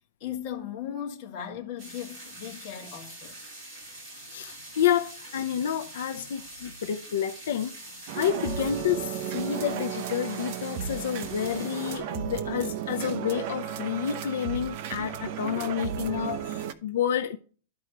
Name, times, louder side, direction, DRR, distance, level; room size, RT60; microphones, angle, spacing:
voice 1, 0.2-3.4, left 9 dB, 40° left, 1.8 m, -37 dB
sound 1, 1.8-12.0, right 1 dB, 25° right, 4.9 m, -45 dB
voice 2, 4.3-7.8 8.2-17.4, left 9 dB, 75° left, 0.6 m, -29 dB
sound 2, 8.1-16.7, right 9 dB, 45° right, 0.7 m, -34 dB
13.0 x 4.8 x 3.0 m
supercardioid pair, 165°, 0 cm